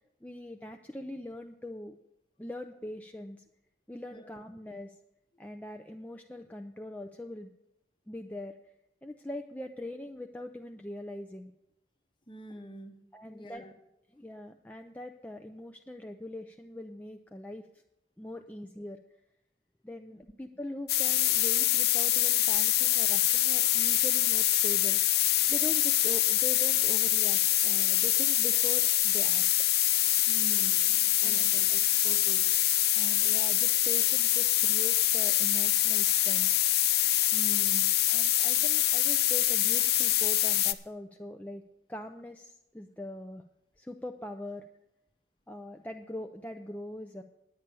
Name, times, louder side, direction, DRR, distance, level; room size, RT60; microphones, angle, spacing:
voice 1, 0.2-2.0 2.4-3.4 3.9-5.0 5.4-7.5 8.1-8.7 9.0-11.5 13.1-13.6 14.1-17.7 18.2-19.0 19.8-25.0 25.5-29.4 31.2-31.5 33.0-36.5 38.1-41.6 41.9-43.4 43.8-44.7 45.5-47.2, left 1 dB, 10° left, 4 dB, 0.4 m, -42 dB
voice 2, 12.3-13.0 13.2-13.7 30.3-32.5 33.2-33.4 37.3-37.9, equal, 25° left, 7 dB, 0.9 m, -45 dB
sound 1, 20.9-40.7, left 13 dB, 60° left, 0.5 m, -25 dB
10.0 x 8.8 x 6.8 m, 0.85 s
head